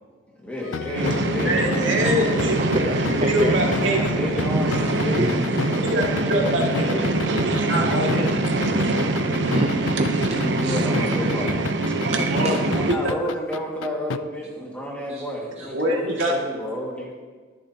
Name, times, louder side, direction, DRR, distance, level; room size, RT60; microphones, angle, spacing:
voice 1, 0.4-2.5 3.9-7.5 10.2-12.0 12.7-17.3, left 1 dB, 5° left, -3 dB, 2.1 m, -31 dB
sound 1, 0.6-14.2, left 5 dB, 90° left, 0.4 m, -31 dB
sound 2, 1.0-12.9, right 2 dB, 65° right, 0.9 m, -23 dB
voice 2, 1.5-2.6 3.3-4.1 5.9-6.8 7.4-8.5 12.0-13.1 15.7-16.3, equal, 85° right, -1 dB, 2.2 m, -25 dB
voice 3, 2.6-3.6 5.2-5.4 9.4-10.3 15.1-15.2 15.6-15.7, right 1 dB, 35° right, 4 dB, 0.6 m, -26 dB
21.5 x 7.2 x 2.9 m, 1.5 s
head